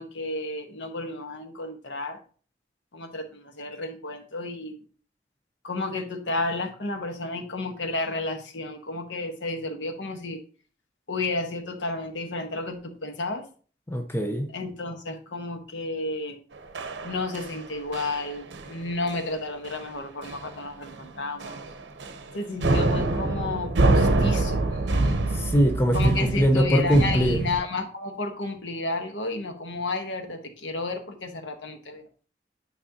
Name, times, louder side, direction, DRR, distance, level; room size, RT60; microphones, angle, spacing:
voice 1, 0.0-2.2 2.9-4.8 5.6-10.4 11.1-13.4 14.5-16.4 17.0-21.6 22.3-25.2 25.9-32.1, left 2 dB, 85° left, 1.2 m, -32 dB
voice 2, 13.9-14.5 25.3-27.4, equal, 15° left, 0.6 m, -22 dB
sound 1, 16.7-17.6 17.9-18.2 18.5-18.8 19.1-19.3 19.7-19.8 20.2-20.6 20.8-21.0 21.4-22.3 22.6-27.6, right 2 dB, 75° right, 0.7 m, -25 dB
9.1 x 5.4 x 2.8 m
head